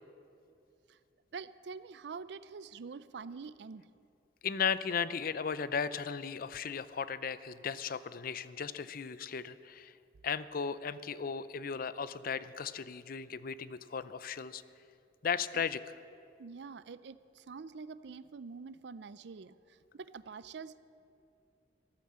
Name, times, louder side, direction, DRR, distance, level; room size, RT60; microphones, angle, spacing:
voice 1, 1.3-3.9 15.5-15.6 16.4-20.8, right 5 dB, 70° right, 15 dB, 0.5 m, -46 dB
voice 2, 4.4-9.9 10.2-14.6 15.2-15.9, left 6 dB, 55° left, 15 dB, 0.5 m, -36 dB
14.0 x 13.0 x 7.5 m, 2.6 s
head